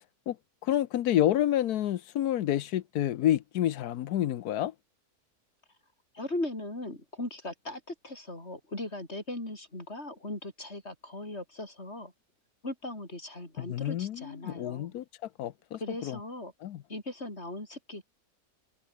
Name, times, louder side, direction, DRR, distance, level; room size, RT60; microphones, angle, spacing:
voice 1, 0.6-4.7 13.6-15.0 15.4-16.2 16.6-16.8, left 12 dB, 85° left, 1.3 m, -29 dB
voice 2, 6.1-12.1 12.6-14.9 15.8-16.5 16.9-18.0, left 2 dB, 45° left, 6.4 m, -38 dB
omnidirectional pair, 1.6 m